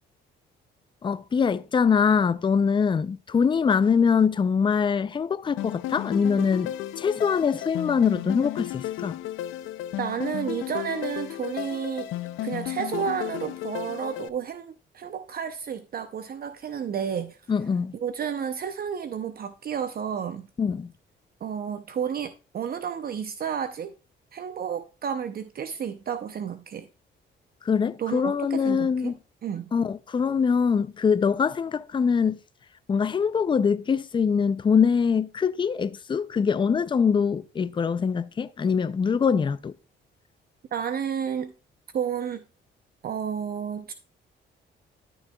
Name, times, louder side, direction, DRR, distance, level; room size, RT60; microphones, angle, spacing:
voice 1, 1.0-9.2 17.5-17.9 20.6-20.9 27.6-29.1 29.7-32.4 32.9-39.7, left 6 dB, 25° left, 0.4 m, -23 dB
sound 1, 5.6-14.3, left 13 dB, 85° left, 0.5 m, -33 dB
voice 2, 10.0-12.1 12.4-17.4 18.0-20.5 21.4-23.9 24.3-26.9 28.0-29.1 29.4-29.7 40.7-41.5 41.9-42.4 43.0-43.9, right 8 dB, 50° right, 0.6 m, -31 dB
13.0 x 6.2 x 2.3 m
cardioid pair, 90°, 20 cm